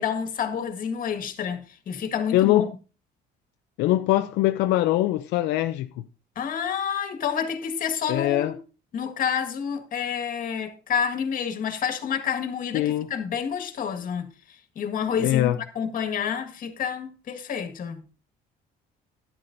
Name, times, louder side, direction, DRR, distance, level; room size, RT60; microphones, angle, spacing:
voice 1, 0.0-2.7 6.4-8.6 8.9-14.3 14.8-18.0, left 7 dB, 55° left, 1.7 m, -29 dB
voice 2, 2.3-2.7 3.8-5.9 8.1-8.5 12.7-13.1 15.2-15.6, left 14 dB, 90° left, 0.5 m, -22 dB
12.5 x 10.0 x 2.6 m
cardioid pair, 110°, 17 cm